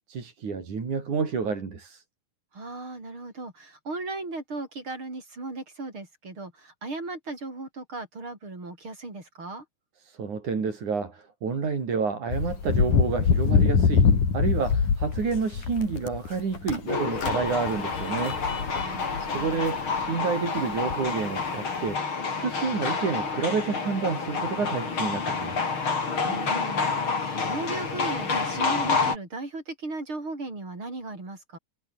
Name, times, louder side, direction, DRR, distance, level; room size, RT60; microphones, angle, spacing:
voice 1, 0.1-2.0 10.1-18.4 19.3-22.0 22.4-25.7, right 5 dB, 75° right, 5.9 m, -29 dB
voice 2, 2.5-9.7 18.7-19.8 26.2-31.6, right 2 dB, 40° right, 7.3 m, -37 dB
sound 1, 12.3-16.8 17.2-20.1 20.9-21.4, left 6 dB, 85° left, 5.4 m, -24 dB
sound 2, 16.9-29.2, left 4 dB, 40° left, 4.3 m, -29 dB
omnidirectional pair, 3.5 m